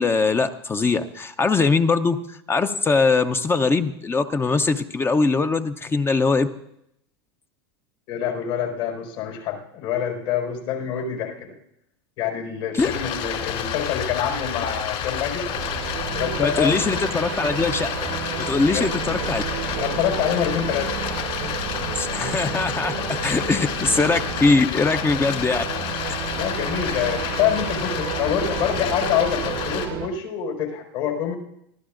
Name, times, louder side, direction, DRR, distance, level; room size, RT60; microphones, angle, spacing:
voice 1, 0.0-6.5 12.7-12.9 16.4-17.9 18.4-19.4 21.9-25.6 26.1-26.2, left 4 dB, 15° left, 9 dB, 0.6 m, -21 dB
voice 2, 8.1-11.5 12.2-15.5 16.1-17.0 18.7-18.9 19.8-21.0 24.1-24.3 26.3-31.3, left 9 dB, 70° left, 0 dB, 4.8 m, -26 dB
Stream, 12.8-29.8, left 8 dB, 50° left, 2.9 m, -29 dB
sound 1, 15.5-30.1, right 12 dB, 55° right, 0.9 m, -32 dB
24.5 x 14.5 x 2.5 m, 0.77 s
hypercardioid pair, 110°, 14 cm